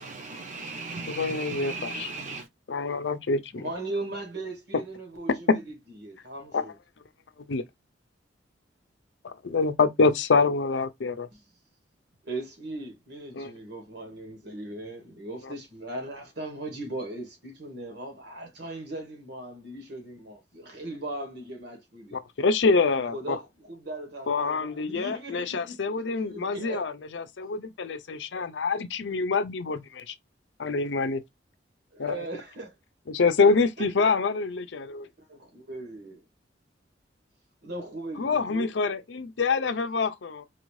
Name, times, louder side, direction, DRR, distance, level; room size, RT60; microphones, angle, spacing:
voice 1, 0.0-2.5, right 3 dB, 45° right, 0.9 m, -36 dB
voice 2, 1.1-2.1 2.7-3.7 5.5-5.6 6.5-6.6 7.4-7.6 9.2-11.3 13.3-13.5 15.4-15.5 22.1-23.4 24.3-30.1 30.6-31.2 32.0-32.3 33.1-35.1 38.2-40.4, left 4 dB, 75° left, 0.6 m, -26 dB
voice 3, 3.5-5.6 6.0-6.7 12.2-22.2 22.9-25.7 26.1-26.9 31.9-32.7 33.4-33.5 33.8-34.1 35.0-36.2 37.6-38.7, right 2 dB, 65° right, 1.6 m, -38 dB
4.0 x 2.6 x 3.1 m
head